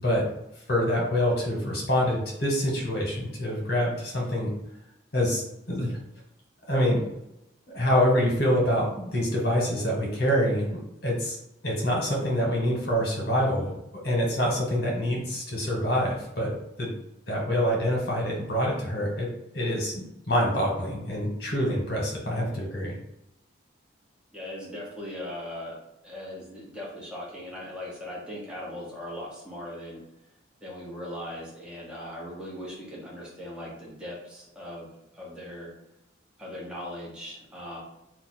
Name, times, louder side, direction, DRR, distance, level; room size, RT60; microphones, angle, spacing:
voice 1, 0.7-4.5 5.1-6.0 6.7-7.0 7.7-11.4 11.6-13.7 14.0-16.5 16.8-16.9 17.3-19.3 19.5-22.9, equal, 55° left, -2 dB, 1.1 m, -26 dB
voice 2, 24.3-25.8 26.0-30.0 30.6-34.9 35.1-35.7 36.4-37.8, left 1 dB, 5° right, -5 dB, 0.8 m, -39 dB
2.7 x 2.2 x 4.1 m, 0.83 s
head